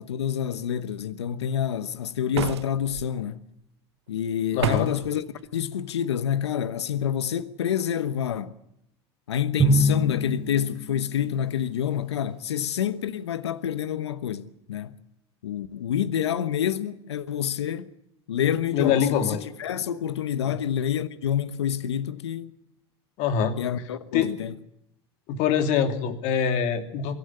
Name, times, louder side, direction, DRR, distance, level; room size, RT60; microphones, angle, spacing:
voice 1, 0.0-3.4 4.1-5.2 5.5-8.5 9.3-14.9 15.4-17.9 18.3-22.5 23.6-24.6, left 9 dB, 85° left, 1.0 m, -27 dB
sound 1, 2.3-3.1 4.6-5.1, right 12 dB, 80° right, 0.8 m, -30 dB
voice 2, 4.5-4.9 18.7-19.4 20.4-20.5 23.2-23.6 24.1-24.3 25.3-27.1, left 7 dB, 60° left, 2.8 m, -24 dB
Drum, 9.6-11.8, equal, 35° right, 3.8 m, -25 dB
23.5 x 13.5 x 9.7 m
hypercardioid pair, 80°, 14 cm